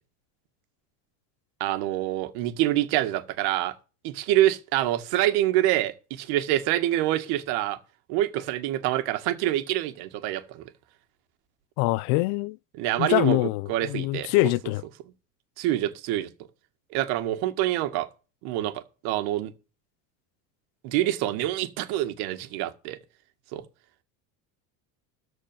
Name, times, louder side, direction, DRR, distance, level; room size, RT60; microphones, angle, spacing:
voice 1, 1.6-3.8 4.0-7.8 8.1-10.6 12.7-14.5 15.6-16.3 16.9-18.1 18.4-19.5 20.8-23.0 23.5-23.6, right 14 dB, 70° right, 1.8 m, -26 dB
voice 2, 11.8-12.6 13.0-14.8, left 20 dB, 75° left, 0.5 m, -24 dB
13.5 x 4.5 x 7.5 m
cardioid pair, 140°, 40 cm